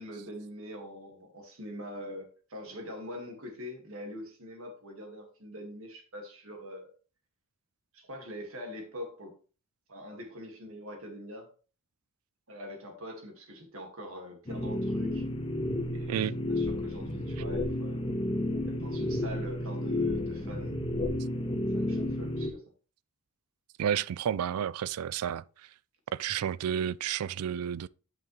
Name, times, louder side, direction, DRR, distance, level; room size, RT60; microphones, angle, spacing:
voice 1, 0.0-6.9 7.9-9.3 9.9-11.5 12.5-15.3 15.9-16.3 16.6-18.1 18.6-20.8 21.7-22.7, equal, 65° right, 2.0 m, -43 dB
sound 1, 14.5-22.5, left 1 dB, 25° left, 0.9 m, -31 dB
voice 2, 23.8-25.4 26.1-27.9, right 9 dB, 85° right, 0.4 m, -31 dB
9.0 x 5.8 x 3.2 m
head